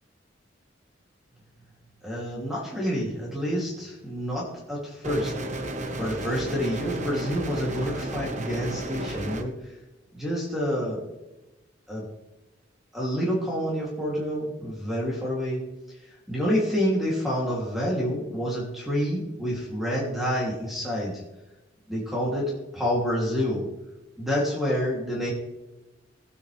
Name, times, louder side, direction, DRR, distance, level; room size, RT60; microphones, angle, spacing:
voice 1, 2.0-5.3 6.0-9.5 10.1-11.0 11.9-12.0 12.9-15.6 16.3-21.2 21.9-23.7 24.2-25.3, equal, ahead, -4 dB, 2.8 m, -28 dB
sound 1, 5.0-9.4, right 1 dB, 40° right, 1.2 m, -33 dB
19.0 x 8.9 x 3.4 m, 1.0 s
head